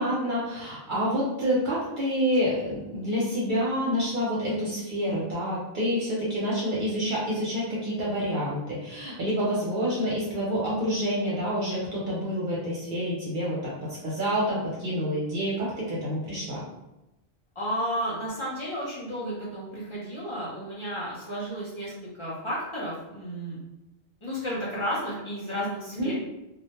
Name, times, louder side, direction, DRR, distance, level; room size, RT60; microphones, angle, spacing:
voice 1, 0.0-16.6 26.0-26.1, equal, 55° right, -6 dB, 0.7 m, -28 dB
voice 2, 17.6-21.9 22.2-23.6 24.2-26.1, equal, 35° left, -7 dB, 0.6 m, -32 dB
2.2 x 2.1 x 2.8 m, 0.96 s
omnidirectional pair, 1.1 m